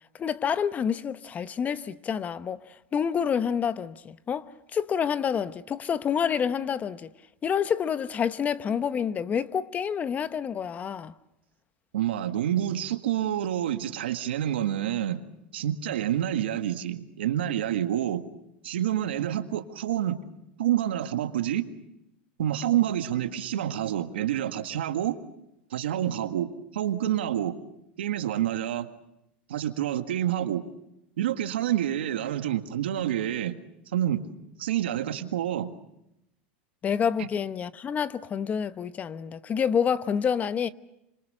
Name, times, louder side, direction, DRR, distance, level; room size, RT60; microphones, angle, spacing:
voice 1, 0.2-7.1 7.4-11.1 36.8-40.7, left 7 dB, 25° left, 1.0 m, -28 dB
voice 2, 11.9-15.2 15.5-18.2 18.6-20.2 20.6-21.7 22.4-25.2 25.7-27.6 28.0-28.9 29.5-30.6 31.2-33.6 33.9-34.2 34.6-35.7, right 11 dB, 90° right, 1.8 m, -28 dB
27.0 x 25.5 x 6.7 m
supercardioid pair, 115°, 6 cm